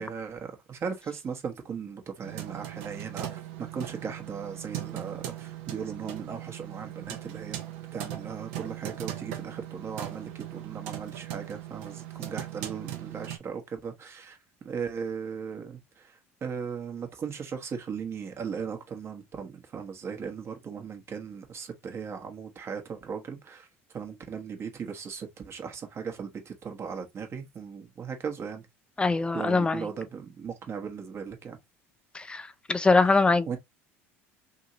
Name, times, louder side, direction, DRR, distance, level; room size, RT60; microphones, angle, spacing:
voice 1, 0.0-7.6 7.9-14.4 14.6-28.7 29.3-31.6 33.5-33.6, right 6 dB, 35° right, 0.9 m, -37 dB
sound 1, 2.2-13.4, right 12 dB, 70° right, 0.7 m, -39 dB
voice 2, 29.0-29.9 32.1-33.5, left 3 dB, 15° left, 0.4 m, -23 dB
2.9 x 2.7 x 2.6 m
hypercardioid pair, 80°, 7 cm